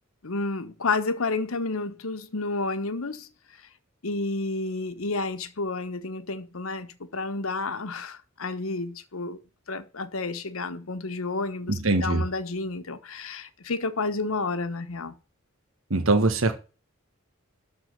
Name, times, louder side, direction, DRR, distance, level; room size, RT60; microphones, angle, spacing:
voice 1, 0.2-3.3 4.0-9.4 9.7-15.2, left 3 dB, 80° left, 1.1 m, -30 dB
voice 2, 11.7-12.2 15.9-16.6, right 2 dB, 70° right, 1.3 m, -22 dB
12.5 x 4.3 x 6.6 m
head